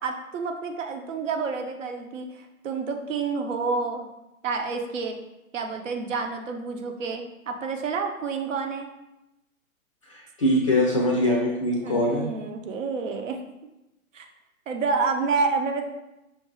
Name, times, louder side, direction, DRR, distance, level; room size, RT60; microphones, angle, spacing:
voice 1, 0.0-4.1 4.4-5.2 5.5-8.9 11.8-13.4 14.1-14.3 14.7-15.8, right 4 dB, 60° right, 4 dB, 0.8 m, -29 dB
voice 2, 10.1-12.3, left 1 dB, 25° left, 0 dB, 0.4 m, -23 dB
5.7 x 2.6 x 2.9 m, 0.94 s
hypercardioid pair, 130°, 42 cm